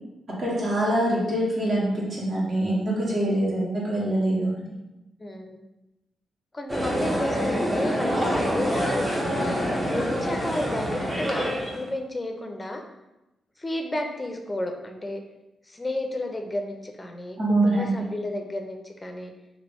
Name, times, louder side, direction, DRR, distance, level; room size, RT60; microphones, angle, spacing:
voice 1, 0.4-4.7 17.4-17.9, right 1 dB, 55° right, -6 dB, 1.1 m, -24 dB
voice 2, 5.2-5.6 6.5-9.1 9.9-12.8 13.6-15.2 15.7-17.4 17.6-19.3, left 1 dB, 20° left, 4 dB, 0.5 m, -32 dB
sound 1, 6.7-11.9, equal, 20° right, 0.8 m, -26 dB
2.9 x 2.7 x 3.4 m, 0.95 s
cardioid pair, 75°, 0 cm